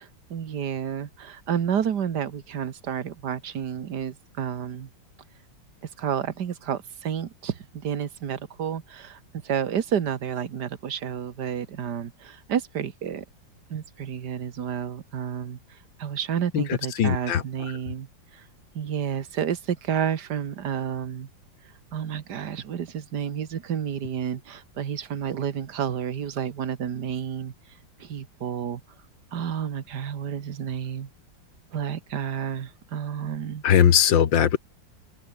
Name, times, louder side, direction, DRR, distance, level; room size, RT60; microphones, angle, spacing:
voice 1, 0.0-4.9 6.0-13.3 13.7-15.6 16.0-18.1 18.3-18.4 18.8-21.3 21.9-27.5 28.0-28.8 29.3-31.1 31.7-33.6, right 8 dB, 60° right, 1.9 m, -30 dB
voice 2, 17.0-17.4 33.6-34.6, left 9 dB, 75° left, 2.2 m, -19 dB
omnidirectional pair, 2.1 m